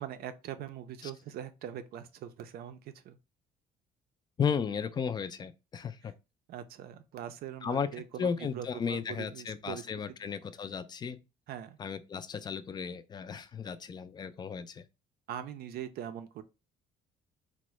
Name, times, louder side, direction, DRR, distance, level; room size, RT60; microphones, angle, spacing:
voice 1, 0.0-3.2 6.5-9.8 11.5-11.8 15.3-16.4, right 10 dB, 65° right, 0.5 m, -42 dB
voice 2, 4.4-6.1 7.6-7.9 8.2-11.2 11.8-14.8, left 6 dB, 25° left, 0.3 m, -34 dB
3.5 x 2.1 x 3.0 m
cardioid pair, 110°, 17 cm